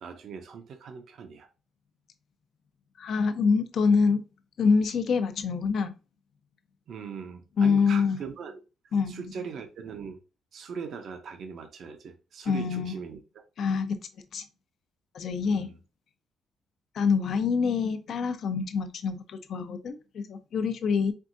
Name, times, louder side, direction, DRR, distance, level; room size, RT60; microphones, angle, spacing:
voice 1, 0.0-1.5 6.9-8.6 9.1-10.2 10.5-13.2 15.4-15.8, right 6 dB, 65° right, 0.7 m, -40 dB
voice 2, 3.0-4.2 4.6-5.9 7.6-8.2 8.9-9.3 12.5-12.9 13.6-14.4 15.1-15.7 16.9-21.1, left 5 dB, 65° left, 0.7 m, -26 dB
4.6 x 3.5 x 2.6 m
cardioid pair, 90°, 0 cm